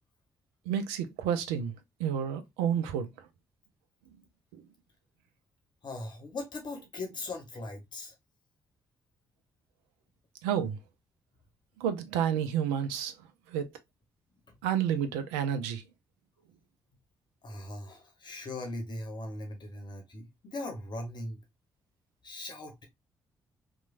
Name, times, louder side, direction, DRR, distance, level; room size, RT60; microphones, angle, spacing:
voice 1, 0.7-1.7 2.0-3.1 4.5-4.6 10.4-10.8 11.8-13.1 13.5-13.7 14.6-15.8, right 8 dB, 75° right, 0.4 m, -30 dB
voice 2, 5.8-8.1 14.5-14.6 17.4-21.4 22.2-22.8, left 2 dB, 45° left, 0.8 m, -39 dB
3.0 x 2.2 x 2.4 m
figure-of-eight pair, 40°, 10 cm